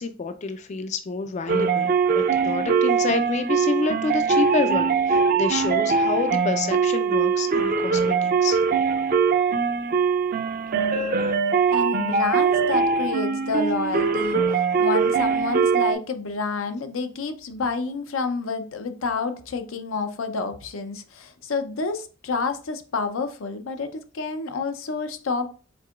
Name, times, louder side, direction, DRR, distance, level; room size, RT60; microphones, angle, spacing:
voice 1, 0.0-8.6 10.9-11.0, left 4 dB, 35° left, 0.3 m, -28 dB
sound 1, 1.5-15.9, right 5 dB, 45° right, 0.4 m, -22 dB
voice 2, 11.7-14.4 14.8-25.5, left 4 dB, 90° left, 0.6 m, -29 dB
4.7 x 3.6 x 2.3 m
head